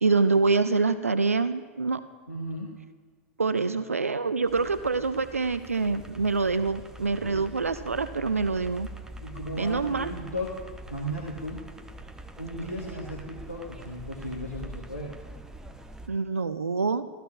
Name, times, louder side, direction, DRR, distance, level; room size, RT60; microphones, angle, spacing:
voice 1, 0.0-2.0 3.4-8.9 9.6-10.1 16.1-17.0, right 4 dB, 80° right, 13 dB, 0.4 m, -26 dB
voice 2, 2.3-2.7 7.2-7.4 9.2-10.6 10.9-11.6 12.4-15.1, equal, 90° left, -4 dB, 1.3 m, -35 dB
sound 1, 4.5-16.1, right 1 dB, 5° right, 0.8 m, -44 dB
14.5 x 14.0 x 2.4 m, 1.5 s
figure-of-eight pair, 90°, 7 cm